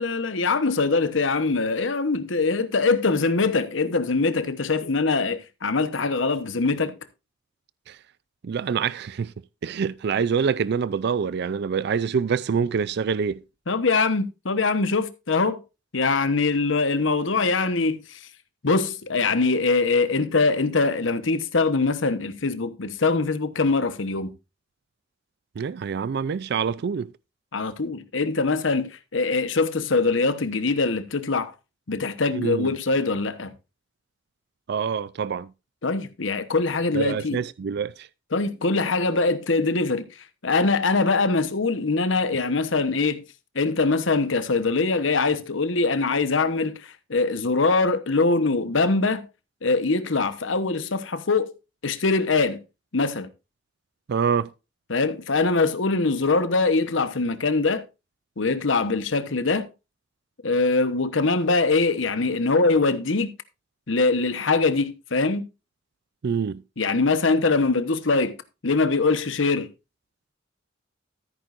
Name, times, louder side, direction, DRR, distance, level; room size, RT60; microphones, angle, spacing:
voice 1, 0.0-7.0 13.7-15.6 15.9-18.3 18.6-24.3 27.5-31.5 31.9-33.5 35.8-37.4 38.3-43.2 43.5-49.3 49.6-51.5 51.8-52.6 52.9-53.3 54.9-57.8 58.4-59.7 60.4-63.3 63.9-65.4 66.8-68.4 68.6-69.7, left 3 dB, 75° left, 1.0 m, -23 dB
voice 2, 8.4-9.3 9.6-13.4 25.6-27.1 32.3-32.7 34.7-35.5 36.9-38.1 54.1-54.5 66.2-66.6, right 6 dB, 60° right, 0.4 m, -26 dB
14.0 x 9.0 x 2.5 m
head